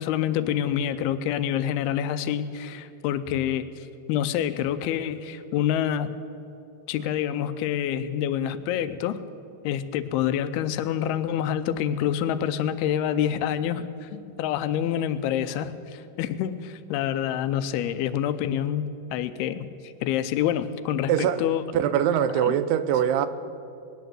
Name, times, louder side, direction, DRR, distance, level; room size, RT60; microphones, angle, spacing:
voice 1, 0.0-6.1 6.9-9.2 9.6-21.6 22.4-22.5, left 10 dB, 85° left, 12 dB, 2.6 m, -27 dB
voice 2, 21.1-21.5 21.7-23.3, right 9 dB, 90° right, 11 dB, 2.7 m, -23 dB
20.0 x 9.3 x 7.5 m, 2.7 s
omnidirectional pair, 4.5 m